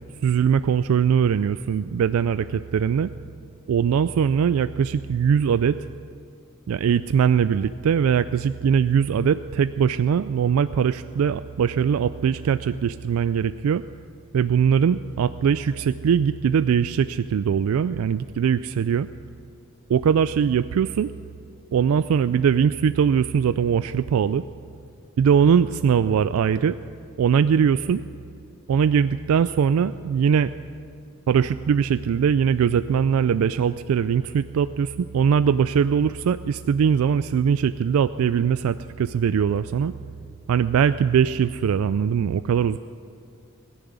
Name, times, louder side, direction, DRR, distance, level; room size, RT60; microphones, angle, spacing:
voice 1, 0.2-3.1 3.7-5.8 6.7-13.8 14.3-19.1 19.9-21.1 21.7-24.4 25.2-26.8 27.2-28.0 28.7-30.5 31.3-39.9 40.5-42.8, right 7 dB, 90° right, 13 dB, 0.3 m, -21 dB
20.0 x 7.1 x 9.5 m, 2.4 s
head